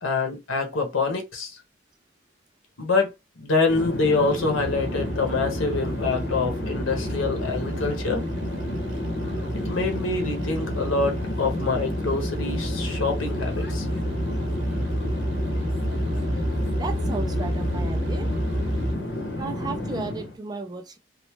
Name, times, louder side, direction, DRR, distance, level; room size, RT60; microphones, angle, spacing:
voice 1, 0.0-1.6 2.8-8.2 9.6-13.9, left 3 dB, 85° left, 1.0 m, -26 dB
Conversation / Chatter / Fixed-wing aircraft airplane, 3.7-20.4, left 1 dB, 55° left, 0.7 m, -31 dB
sound 1, 4.5-19.0, equal, 70° right, 0.9 m, -30 dB
voice 2, 16.6-18.3 19.4-21.0, right 3 dB, 20° right, 0.4 m, -34 dB
3.1 x 2.0 x 3.1 m
head